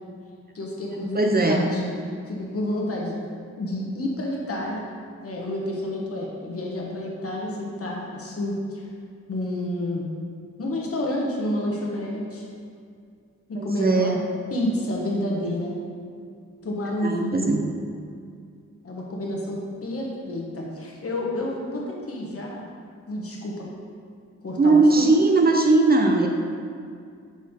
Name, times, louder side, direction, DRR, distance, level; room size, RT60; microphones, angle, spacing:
voice 1, 0.5-1.9 2.3-3.1 3.6-4.8 5.2-8.9 9.3-10.1 10.6-12.4 13.6-14.1 14.5-15.7 16.6-17.6 18.8-22.7 23.1-23.7 24.4-25.1, left 1 dB, 50° left, -2 dB, 1.1 m, -29 dB
voice 2, 1.1-1.7 13.6-14.2 17.0-17.6 24.6-26.3, right 3 dB, 30° right, 2 dB, 0.5 m, -19 dB
6.0 x 4.1 x 4.3 m, 2.2 s
wide cardioid pair, 115°, 30 cm